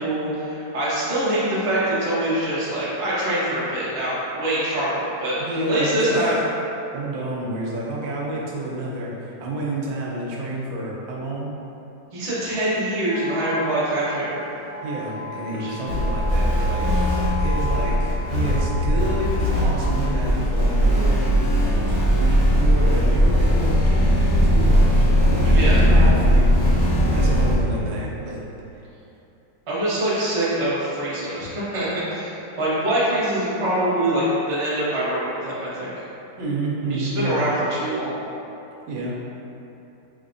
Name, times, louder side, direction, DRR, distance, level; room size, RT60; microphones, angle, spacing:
voice 1, 0.0-5.4 5.7-6.4 12.1-14.5 15.6-15.7 25.5-25.8 29.7-35.9 36.9-38.2, right 1 dB, 40° right, -9 dB, 0.4 m, -24 dB
voice 2, 5.4-6.2 6.9-11.6 14.8-28.4 36.4-37.4 38.9-39.1, right 1 dB, 90° right, -4 dB, 1.4 m, -30 dB
sound 1, 13.1-20.1, left 1 dB, 40° left, 1.6 m, -35 dB
sound 2, 15.9-27.6, equal, 55° left, 1.4 m, -19 dB
4.0 x 3.3 x 2.6 m, 2.9 s
omnidirectional pair, 2.0 m